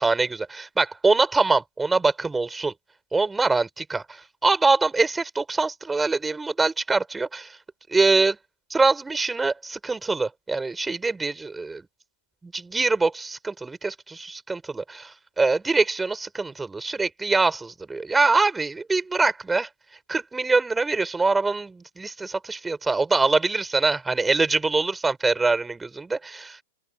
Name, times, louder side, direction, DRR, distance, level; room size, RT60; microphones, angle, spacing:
voice 1, 0.0-2.7 3.1-7.6 7.9-8.4 8.7-11.9 12.4-19.7 20.1-26.6, right 3 dB, 10° right, 5.7 m, -24 dB
open air
figure-of-eight pair, 100°, 0 cm